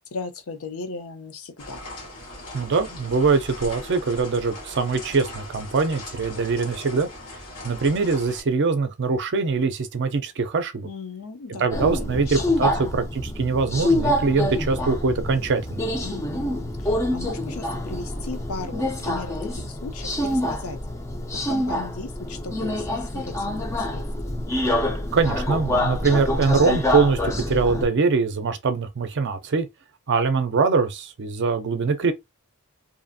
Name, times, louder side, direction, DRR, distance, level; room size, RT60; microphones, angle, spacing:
voice 1, 0.1-1.8 10.8-12.2 12.6-13.0 16.0-20.8 21.5-24.3, left 4 dB, 65° left, 0.6 m, -37 dB
sound 1, 1.6-8.4, left 1 dB, 90° left, 1.2 m, -39 dB
voice 2, 2.5-7.1 7.6-10.9 11.6-15.8 25.1-29.7 30.1-32.1, right 4 dB, 55° right, 0.5 m, -23 dB
Subway metro underground, 11.7-27.9, left 1 dB, 15° left, 0.4 m, -26 dB
2.7 x 2.4 x 2.6 m
head